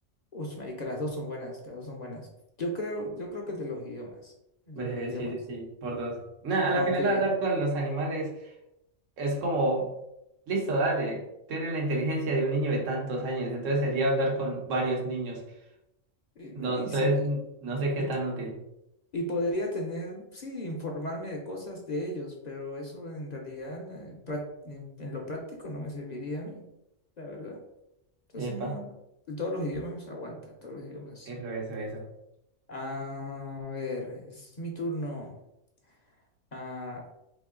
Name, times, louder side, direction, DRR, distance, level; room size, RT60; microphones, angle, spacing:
voice 1, 0.3-2.3 2.6-4.3 4.7-5.4 6.7-7.3 16.4-17.2 18.0-18.1 19.1-26.7 27.2-27.6 28.3-28.9 29.3-31.4 32.7-35.3 36.5-37.0, left 1 dB, 40° left, 0 dB, 0.7 m, -36 dB
voice 2, 4.7-8.3 9.2-9.9 10.5-11.2 11.5-15.4 16.5-18.6 28.4-28.7 31.3-32.0, right 2 dB, 80° right, -1 dB, 1.3 m, -29 dB
3.6 x 3.0 x 3.6 m, 0.85 s
omnidirectional pair, 1.3 m